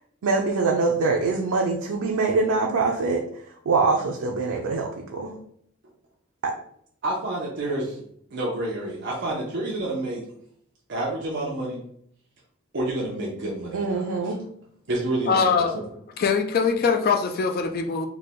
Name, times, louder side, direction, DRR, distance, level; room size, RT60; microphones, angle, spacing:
voice 1, 0.2-3.2 3.7-5.3 6.4-6.5 13.7-14.4, right 3 dB, 90° right, 0 dB, 0.5 m, -24 dB
voice 2, 7.0-8.0 8.3-10.2 10.9-11.8 12.7-14.4 14.9-15.8, right 1 dB, 55° right, -4 dB, 0.7 m, -29 dB
voice 3, 15.3-15.7 16.2-18.0, left 5 dB, 45° left, 5 dB, 0.3 m, -22 dB
3.3 x 2.2 x 4.1 m, 0.66 s
head